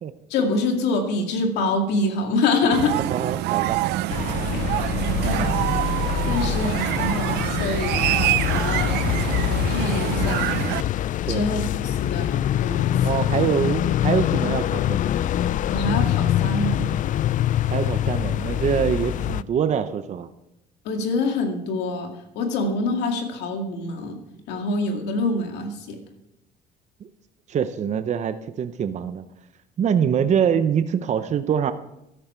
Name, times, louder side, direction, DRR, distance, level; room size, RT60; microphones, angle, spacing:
voice 1, 0.3-3.0 4.5-4.8 5.2-5.5 6.3-7.9 8.5-9.0 9.3-10.5 11.3-13.0 15.7-16.9 20.9-24.2 24.5-26.0, left 3 dB, 85° left, 4 dB, 2.3 m, -25 dB
sound 1, 2.7-10.8, right 16 dB, 80° right, 0.5 m, -25 dB
voice 2, 3.1-3.8 11.3-11.5 13.0-15.0 17.7-20.3 27.5-29.2 29.8-31.7, right 8 dB, 45° right, 10 dB, 0.7 m, -24 dB
sound 2, 4.1-19.4, left 12 dB, 50° left, 0.4 m, -24 dB
13.0 x 11.0 x 4.5 m, 0.86 s
cardioid pair, 110°, 17 cm